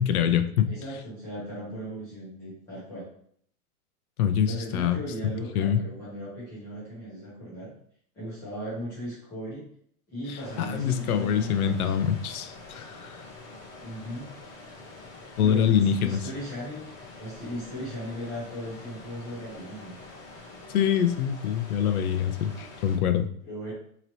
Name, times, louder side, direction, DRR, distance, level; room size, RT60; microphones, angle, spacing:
voice 1, 0.0-0.7 4.2-5.0 5.5-5.8 10.3-13.2 15.4-16.2 20.7-23.3, left 8 dB, 70° left, 9 dB, 0.6 m, -25 dB
voice 2, 0.6-3.1 4.5-7.7 8.1-9.7 10.1-11.9 13.8-14.3 15.4-16.9 17.2-20.0 23.4-23.7, equal, 5° left, -9 dB, 0.7 m, -37 dB
sound 1, 10.4-23.0, left 3 dB, 40° left, 1.0 m, -46 dB
4.0 x 3.0 x 3.0 m, 0.63 s
supercardioid pair, 180°, 45 cm